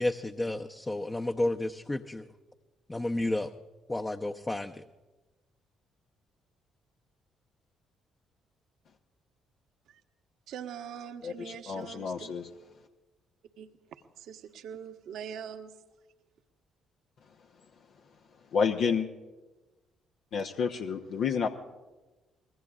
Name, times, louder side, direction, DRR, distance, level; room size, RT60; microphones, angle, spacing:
voice 1, 0.0-2.2 2.9-3.5 3.9-4.8, left 1 dB, 20° left, 5 dB, 0.8 m, -31 dB
voice 2, 10.5-12.3 13.6-13.7 14.2-15.7, right 8 dB, 70° right, 7 dB, 1.1 m, -42 dB
voice 3, 11.2-12.4 18.5-19.1 20.3-21.5, left 6 dB, 65° left, 3 dB, 1.0 m, -29 dB
26.0 x 21.0 x 2.5 m, 1.2 s
hypercardioid pair, 50°, 0 cm